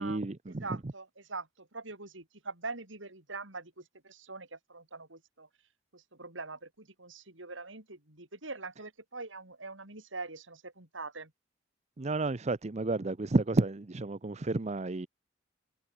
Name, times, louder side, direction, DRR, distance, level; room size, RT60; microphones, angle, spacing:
voice 1, 0.0-0.8 12.0-15.1, right 2 dB, 35° right, 0.7 m, -31 dB
voice 2, 0.6-5.5 5.9-11.3, right 3 dB, 85° right, 5.8 m, -43 dB
head